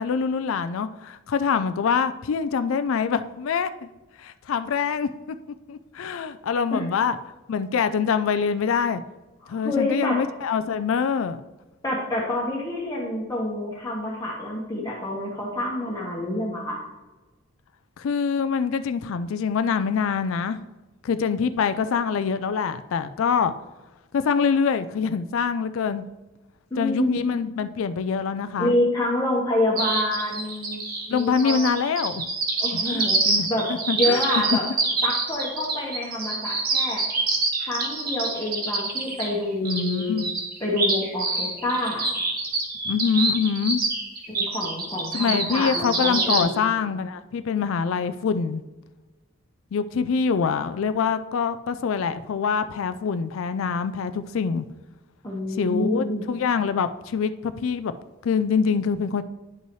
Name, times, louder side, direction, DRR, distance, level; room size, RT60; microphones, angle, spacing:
voice 1, 0.0-3.9 4.2-5.4 5.7-7.2 7.5-9.0 9.5-11.4 18.0-20.6 21.0-23.5 24.1-26.0 26.8-28.7 31.1-32.3 32.7-33.5 33.9-34.2 39.6-40.3 42.8-43.8 45.1-48.6 49.7-54.7 55.6-57.9 58.2-59.2, left 6 dB, 75° left, 11 dB, 0.4 m, -25 dB
voice 2, 9.4-10.2 11.8-16.8 26.7-27.3 28.6-30.8 31.1-31.8 32.6-33.2 33.5-33.7 33.9-34.6 35.0-37.0 37.6-40.2 40.6-42.1 44.3-46.8 55.2-56.2, left 1 dB, 15° left, -4 dB, 1.1 m, -27 dB
sound 1, 29.8-46.4, right 3 dB, 45° right, 1.3 m, -26 dB
10.5 x 5.5 x 3.1 m, 1.2 s
head